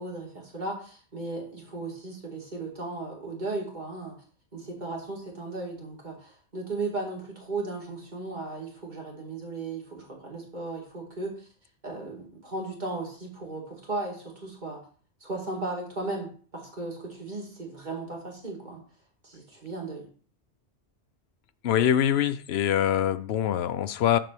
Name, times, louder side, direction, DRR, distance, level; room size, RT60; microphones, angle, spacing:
voice 1, 0.0-4.1 4.5-11.3 11.8-14.8 15.2-18.8 19.2-20.1, right 2 dB, 40° right, -2 dB, 2.5 m, -36 dB
voice 2, 21.6-24.2, left 10 dB, 70° left, 13 dB, 0.8 m, -24 dB
7.7 x 4.3 x 6.8 m, 0.43 s
omnidirectional pair, 1.1 m